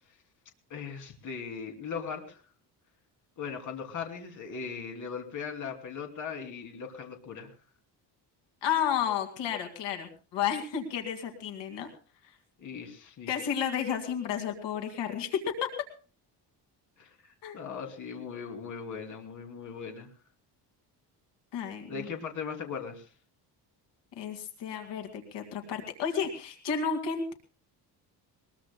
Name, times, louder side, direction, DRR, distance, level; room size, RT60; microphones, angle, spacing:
voice 1, 0.7-2.4 3.4-7.5 12.6-13.3 17.0-20.1 21.9-23.1, left 6 dB, 45° left, 3 dB, 2.9 m, -39 dB
voice 2, 8.6-11.9 13.3-15.7 17.4-17.6 21.5-22.1 24.2-27.3, left 8 dB, 80° left, 6 dB, 2.3 m, -32 dB
21.0 x 21.0 x 2.2 m, 0.38 s
cardioid pair, 160°, 42 cm